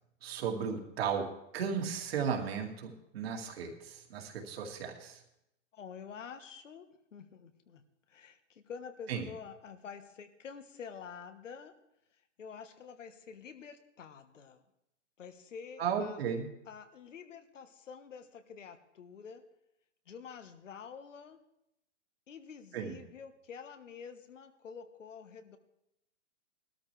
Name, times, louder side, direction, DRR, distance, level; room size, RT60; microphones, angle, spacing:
voice 1, 0.2-1.3 1.5-5.2 9.1-9.2 15.8-16.5 22.7-23.0, right 7 dB, 55° right, 2 dB, 2.2 m, -35 dB
voice 2, 5.7-6.9 7.1-7.8 8.1-11.7 12.4-14.6 15.2-16.2 16.7-19.4 20.1-21.4 22.3-25.6, left 6 dB, 80° left, 9 dB, 1.4 m, -48 dB
18.0 x 13.0 x 3.3 m, 0.82 s
hypercardioid pair, 155°, 37 cm